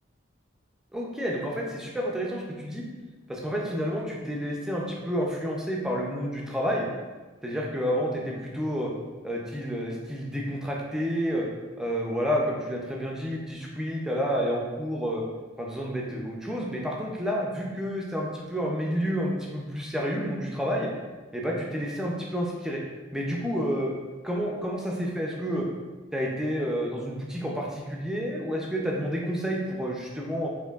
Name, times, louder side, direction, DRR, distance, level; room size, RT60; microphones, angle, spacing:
voice 1, 0.9-2.8 3.3-6.9 7.4-8.9 9.2-11.5 11.8-15.2 15.6-20.9 21.3-22.8 23.1-23.9 24.2-25.7 26.1-30.5, equal, 5° right, -2 dB, 0.4 m, -29 dB
4.4 x 2.6 x 2.3 m, 1.3 s
head